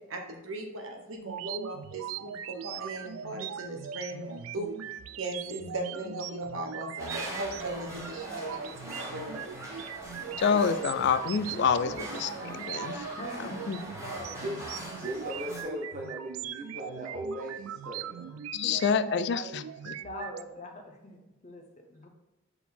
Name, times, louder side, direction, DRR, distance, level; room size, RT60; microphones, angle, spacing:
voice 1, 0.1-4.7 5.2-9.4, right 1 dB, 75° right, 2 dB, 1.1 m, -38 dB
sound 1, 1.2-20.4, right 9 dB, 90° right, 0.3 m, -40 dB
sound 2, 7.0-15.6, equal, 15° right, 1.2 m, -41 dB
voice 2, 10.3-13.8 18.5-19.9, left 6 dB, 55° left, 12 dB, 0.3 m, -28 dB
voice 3, 11.9-12.3 13.2-13.6 14.0-14.4 18.6-19.0 20.0-22.1, left 1 dB, 35° left, 3 dB, 0.8 m, -44 dB
voice 4, 15.0-18.3, right 1 dB, 40° right, -1 dB, 0.8 m, -38 dB
5.5 x 4.1 x 4.3 m, 1.0 s
head